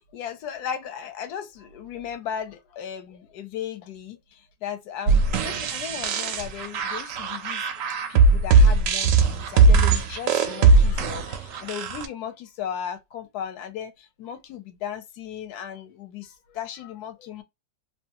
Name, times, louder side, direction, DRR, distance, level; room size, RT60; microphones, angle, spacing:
voice 1, 0.0-17.4, left 8 dB, 70° left, 1.1 m, -36 dB
sound 1, 5.1-12.1, right 4 dB, 70° right, 0.7 m, -19 dB
2.9 x 2.3 x 2.8 m
omnidirectional pair, 1.9 m